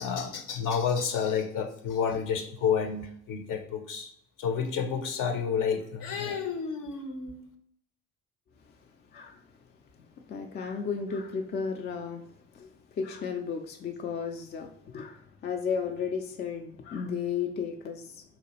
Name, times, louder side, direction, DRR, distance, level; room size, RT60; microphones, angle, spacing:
voice 1, 0.0-4.1 4.4-7.4, left 6 dB, 50° left, 6 dB, 0.7 m, -30 dB
voice 2, 10.3-12.2 12.5-18.2, left 6 dB, 25° left, 4 dB, 0.3 m, -34 dB
4.0 x 2.3 x 2.8 m, 0.69 s
hypercardioid pair, 50°, 41 cm